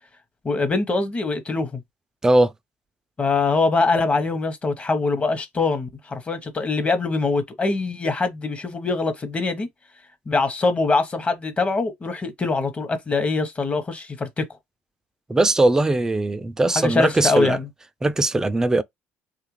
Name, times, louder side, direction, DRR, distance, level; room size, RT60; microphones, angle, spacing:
voice 1, 0.4-1.8 3.2-9.7 10.3-14.5 16.7-17.7, left 3 dB, 25° left, 0.9 m, -23 dB
voice 2, 15.3-17.6 18.0-18.8, right 2 dB, 10° right, 0.4 m, -20 dB
3.2 x 2.4 x 3.0 m
supercardioid pair, 90°, 5 cm